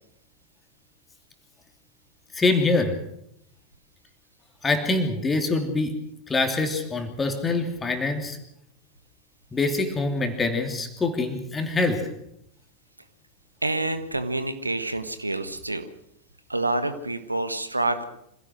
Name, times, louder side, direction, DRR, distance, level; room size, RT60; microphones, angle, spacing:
voice 1, 2.3-3.0 4.6-6.0 6.3-8.4 9.5-12.1, left 3 dB, 15° left, 6 dB, 3.0 m, -25 dB
voice 2, 13.6-15.8 16.5-18.0, right 2 dB, 85° right, 11 dB, 1.5 m, -27 dB
26.0 x 16.5 x 6.3 m, 0.76 s
figure-of-eight pair, 90°, 0 cm